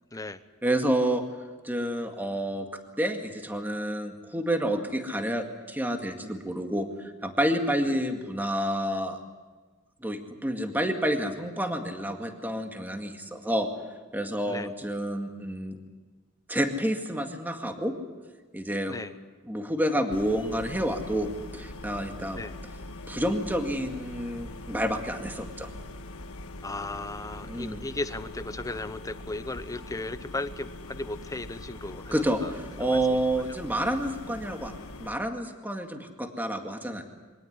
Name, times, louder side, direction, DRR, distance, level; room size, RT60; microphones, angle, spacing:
voice 1, 0.6-1.2 1.6-2.7 3.0-9.2 10.0-13.7 14.1-15.8 16.5-17.9 18.5-19.0 19.5-22.4 23.1-25.7 27.5-27.8 32.1-34.7 35.0-37.0, right 1 dB, 10° right, 4 dB, 2.0 m, -29 dB
sound 1, 20.1-35.1, left 2 dB, 75° left, 1.5 m, -42 dB
voice 2, 26.6-32.5 32.8-33.4, left 2 dB, 15° left, 12 dB, 0.9 m, -36 dB
24.0 x 18.0 x 9.7 m, 1.3 s
head